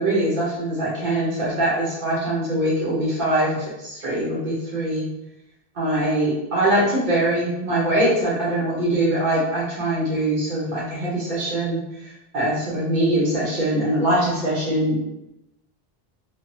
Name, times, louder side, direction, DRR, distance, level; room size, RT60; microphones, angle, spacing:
voice 1, 0.0-5.1 5.7-15.0, right 1 dB, 50° right, -8 dB, 1.2 m, -23 dB
3.7 x 2.1 x 2.8 m, 0.90 s
omnidirectional pair, 1.0 m